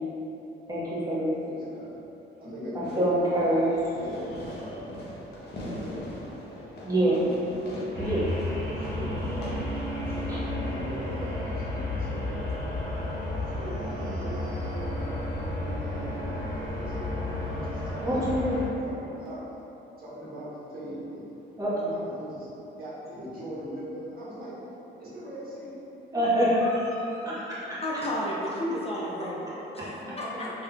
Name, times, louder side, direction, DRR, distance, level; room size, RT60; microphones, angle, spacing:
voice 1, 0.7-1.3 2.7-3.7 6.8-7.2 8.0-8.3 10.3-10.4 18.0-18.6 21.6-21.9 26.1-27.8 29.7-29.9, right 1 dB, 20° right, -9 dB, 1.1 m, -26 dB
voice 2, 1.4-2.0 2.4-2.8 4.0-4.2 4.6-4.9 5.6-6.1 6.4-6.5 7.0-7.3 8.8-9.5 9.9-12.5 13.4-18.3 18.8-19.5 20.0-21.3 21.9-24.5 25.0-25.8 28.3-28.7 29.9-30.5, equal, 50° right, -11 dB, 1.5 m, -40 dB
Fireworks, 2.8-11.8, left 1 dB, 55° left, 0.8 m, -42 dB
sound 1, 7.9-18.7, left 1 dB, 70° right, 1.0 m, -32 dB
voice 3, 27.8-29.5 29.7-30.5, left 1 dB, 30° left, -5 dB, 0.4 m, -32 dB
3.4 x 3.4 x 2.3 m, 3.0 s
cardioid pair, 90°, 20 cm